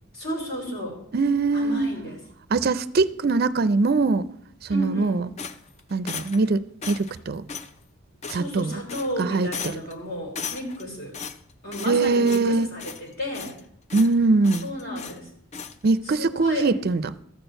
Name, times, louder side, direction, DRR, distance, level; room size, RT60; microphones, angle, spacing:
voice 1, 0.1-1.0 1.5-2.2 4.7-5.2 8.3-11.2 11.6-13.6 14.6-15.3 16.2-16.7, equal, 50° left, 3.2 m, -33 dB
voice 2, 1.1-1.9 2.5-4.3 4.6-5.3 5.9-7.4 8.3-8.8 9.2-9.5 11.9-12.7 13.9-14.7 15.8-17.1, right 3 dB, 45° right, 0.4 m, -22 dB
sound 1, 5.4-6.5 6.8-7.2 7.5-7.7 8.2-8.6 8.9-9.2 9.5-9.9 10.3-10.8 11.1-12.0 12.2-12.5 12.8-13.6 13.9-14.1 14.4-15.2 15.5-15.8, left 6 dB, 30° left, 0.4 m, -36 dB
13.0 x 4.4 x 7.8 m
head